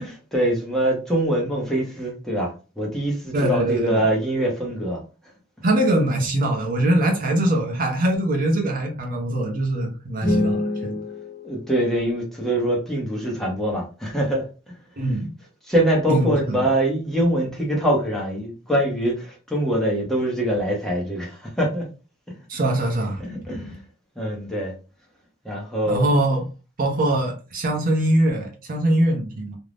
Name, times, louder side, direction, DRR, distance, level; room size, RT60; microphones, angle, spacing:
voice 1, 0.0-5.0 11.4-14.4 15.7-21.8 23.2-23.8 24.2-24.8 25.4-26.1, right 1 dB, ahead, 0.7 m, -24 dB
voice 2, 3.3-4.0 5.6-11.0 15.0-15.3 16.1-16.6 22.5-23.2 25.9-26.4 26.8-29.6, right 1 dB, 45° right, 0.6 m, -22 dB
sound 1, 10.2-12.4, left 1 dB, 45° left, 1.0 m, -27 dB
2.5 x 2.0 x 3.3 m
head